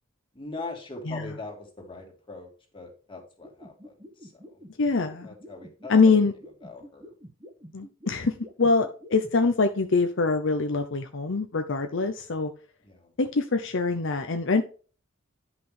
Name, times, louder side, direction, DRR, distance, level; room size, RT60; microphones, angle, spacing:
voice 1, 0.3-4.6 5.2-6.2 6.6-7.1 12.8-13.1, left 3 dB, 25° left, 2.7 m, -41 dB
sound 1, 3.4-9.3, equal, 20° right, 1.8 m, -46 dB
voice 2, 4.8-5.3 5.9-6.3 7.7-12.5 13.2-14.6, left 4 dB, 60° left, 0.8 m, -24 dB
10.5 x 6.0 x 3.5 m
head